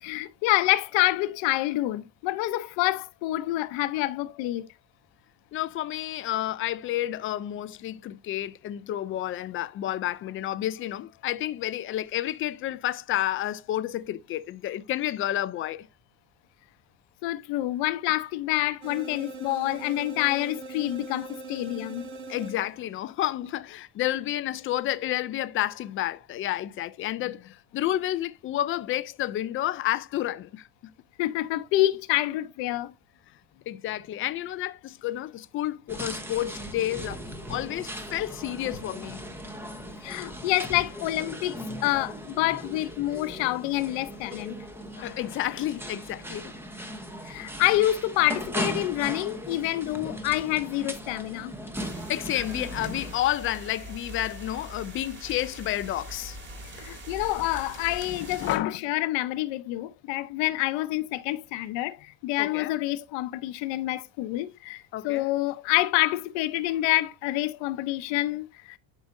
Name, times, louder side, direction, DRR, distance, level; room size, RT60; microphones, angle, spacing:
voice 1, 0.0-4.7 17.2-22.1 31.2-32.9 40.0-44.6 47.2-51.5 56.8-68.8, left 16 dB, 70° left, 0.9 m, -27 dB
voice 2, 5.5-15.9 22.3-30.9 33.7-37.2 37.5-39.3 45.0-46.5 52.1-56.4 58.1-58.8 62.4-62.7 64.9-65.3, left 13 dB, 30° left, 0.4 m, -30 dB
sound 1, 18.8-23.0, right 3 dB, 75° right, 2.3 m, -41 dB
alcohol store - cash register, 35.9-53.2, equal, 5° right, 0.8 m, -38 dB
sound 2, 51.7-58.6, right 1 dB, 25° right, 2.3 m, -42 dB
12.0 x 5.0 x 2.6 m
cardioid pair, 155°, 47 cm